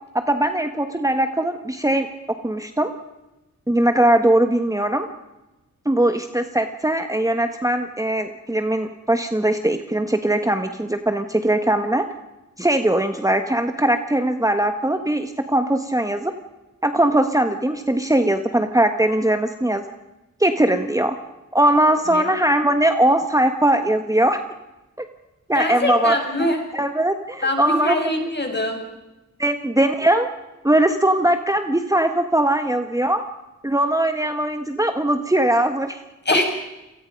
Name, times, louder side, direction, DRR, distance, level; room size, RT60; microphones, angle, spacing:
voice 1, 0.1-2.1 2.4-2.9 3.7-5.1 5.8-12.0 12.6-16.3 16.8-19.8 20.4-21.1 21.5-24.4 25.0-25.1 25.5-26.5 26.7-28.1 29.4-30.3 30.6-33.2 33.6-36.0, right 1 dB, 10° right, 7 dB, 1.4 m, -20 dB
voice 2, 25.5-26.6 27.4-28.8 36.2-36.4, left 1 dB, 35° left, 3 dB, 6.3 m, -23 dB
29.0 x 19.0 x 5.3 m, 1.0 s
cardioid pair, 65°, 31 cm